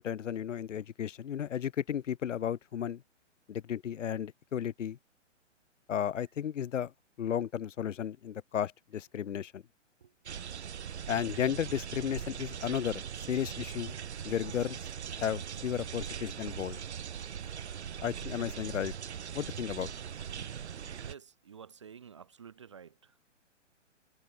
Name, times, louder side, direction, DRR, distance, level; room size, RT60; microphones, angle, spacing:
voice 1, 0.0-3.0 3.5-5.0 5.9-6.9 7.2-9.6 11.1-13.0 13.3-14.0 14.2-14.8 15.1-16.8 18.0-18.9 19.3-19.9, left 9 dB, 75° left, 0.5 m, -34 dB
sound 1, 10.3-21.1, right 8 dB, 60° right, 1.2 m, -41 dB
voice 2, 21.0-23.2, right 7 dB, 25° right, 0.4 m, -51 dB
figure-of-eight pair, 125°, 37 cm